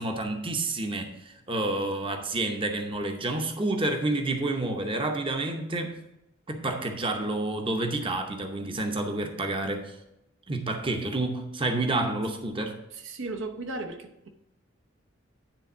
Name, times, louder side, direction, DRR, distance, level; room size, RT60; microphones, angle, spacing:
voice 1, 0.0-6.0 6.5-9.9 10.5-12.8, right 2 dB, 25° right, 4 dB, 0.8 m, -29 dB
voice 2, 12.9-14.3, right 2 dB, 70° right, 5 dB, 0.8 m, -36 dB
9.9 x 3.5 x 7.0 m, 0.89 s
head